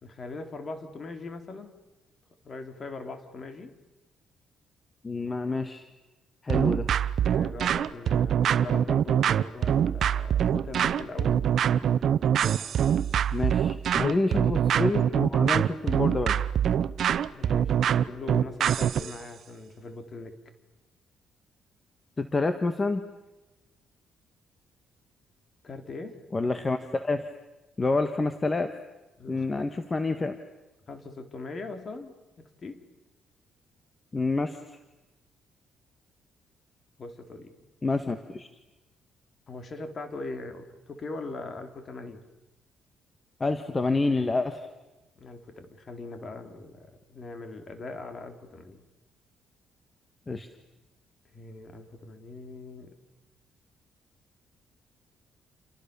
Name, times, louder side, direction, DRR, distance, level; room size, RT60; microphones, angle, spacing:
voice 1, 0.0-1.8 2.4-3.7 7.2-11.9 13.9-14.4 17.3-20.3 25.6-26.2 29.2-29.5 30.9-32.8 37.0-37.5 39.5-42.2 45.2-48.8 51.3-52.9, left 3 dB, 45° left, 7 dB, 3.8 m, -41 dB
voice 2, 5.0-5.9 6.4-6.9 13.3-16.4 22.2-23.0 26.3-27.3 27.8-28.7 29.3-30.4 34.1-34.6 37.8-38.5 43.4-44.7 50.3-50.5, left 3 dB, 25° left, 8 dB, 1.7 m, -28 dB
sound 1, 6.5-19.1, right 9 dB, 65° right, 0.9 m, -24 dB
29.0 x 28.5 x 7.1 m, 1.1 s
cardioid pair, 90°, 0 cm